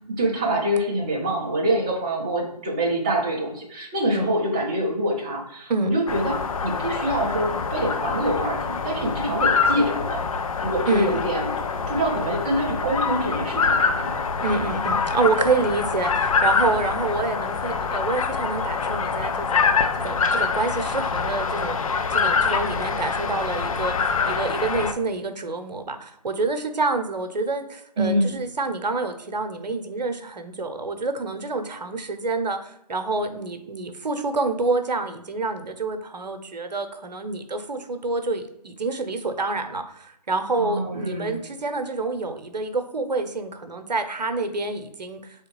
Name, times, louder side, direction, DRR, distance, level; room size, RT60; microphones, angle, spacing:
voice 1, 0.1-6.3 6.6-10.2 10.6-11.5 11.9-14.2 28.0-28.4 40.6-41.4, right 1 dB, 10° right, -3 dB, 0.4 m, -25 dB
voice 2, 5.7-6.0 10.9-11.2 14.4-19.7 19.9-21.8 22.1-45.5, right 3 dB, 75° right, 7 dB, 0.7 m, -27 dB
sound 1, 6.1-24.9, left 5 dB, 55° left, 0.4 m, -25 dB
3.6 x 3.4 x 3.1 m, 0.80 s
figure-of-eight pair, 150°, 21 cm